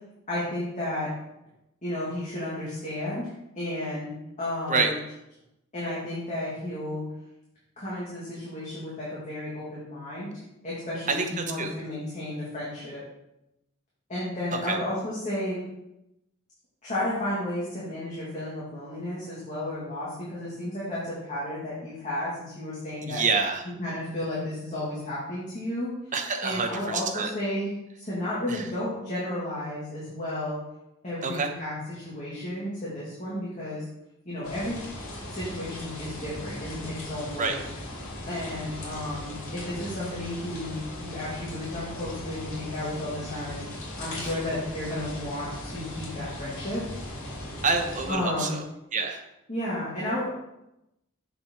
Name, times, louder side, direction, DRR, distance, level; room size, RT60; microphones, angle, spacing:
voice 1, 0.3-1.1 1.8-3.3 3.6-4.1 4.4-5.0 5.7-7.0 7.8-10.3 10.6-13.0 14.1-15.6 16.8-23.2 23.8-25.9 26.4-27.7 28.0-30.6 31.0-33.8 34.2-34.8 35.3-37.6 38.3-43.6 44.0-46.8 48.1-48.5 49.5-50.3, left 1 dB, 35° left, -8 dB, 2.4 m, -32 dB
voice 2, 11.1-11.7 14.7-14.8 23.0-23.6 26.1-27.3 28.5-28.7 31.2-31.5 37.4-37.5 44.2-44.4 47.6-48.6 48.9-49.2, right 4 dB, 40° right, 4 dB, 1.0 m, -27 dB
sound 1, 34.4-48.1, left 1 dB, 75° left, 2.8 m, -38 dB
7.5 x 6.0 x 4.6 m, 0.88 s
head